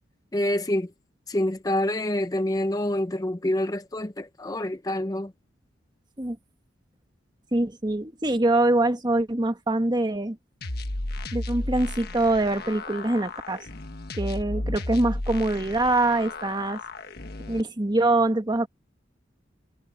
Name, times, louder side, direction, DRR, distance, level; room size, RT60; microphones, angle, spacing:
voice 1, 0.3-0.9 1.3-5.3, left 1 dB, 20° left, 0.6 m, -27 dB
voice 2, 7.5-10.4 11.3-13.6 14.2-16.8 17.5-18.7, right 2 dB, 25° right, 1.4 m, -24 dB
sound 1, 10.6-17.6, left 1 dB, 60° left, 1.4 m, -34 dB
head